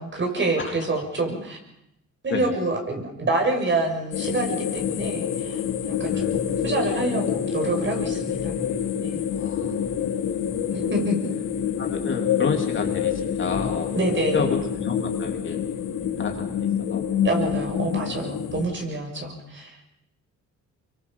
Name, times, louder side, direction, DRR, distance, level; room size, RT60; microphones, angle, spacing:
voice 1, 0.0-1.6 2.2-8.6 9.0-9.2 10.7-11.3 13.9-14.5 17.2-19.8, right 2 dB, 40° right, 2 dB, 6.5 m, -27 dB
voice 2, 2.3-2.6 5.0-5.1 6.1-6.6 8.2-8.3 9.3-9.8 10.7-10.8 11.8-13.9 14.3-15.6 16.2-16.6 16.9-17.0 17.4-17.5, left 5 dB, 40° left, 2 dB, 3.4 m, -30 dB
sound 1, 4.1-18.7, left 8 dB, 85° left, 3.4 m, -27 dB
26.0 x 23.5 x 5.6 m, 0.78 s
cardioid pair, 90°, 30 cm